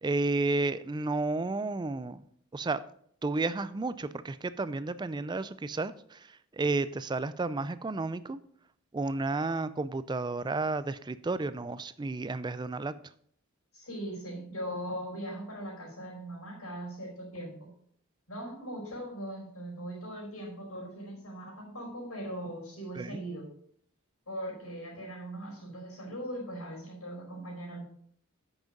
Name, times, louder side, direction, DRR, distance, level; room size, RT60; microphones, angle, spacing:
voice 1, 0.0-2.2 2.5-2.8 3.2-6.2 6.5-8.4 8.9-12.9 23.0-23.2, right 3 dB, 20° right, 15 dB, 0.3 m, -32 dB
voice 2, 13.7-17.7 18.3-23.5 24.3-27.8, right 1 dB, 75° left, -1 dB, 4.4 m, -40 dB
8.9 x 6.1 x 5.2 m, 0.64 s
head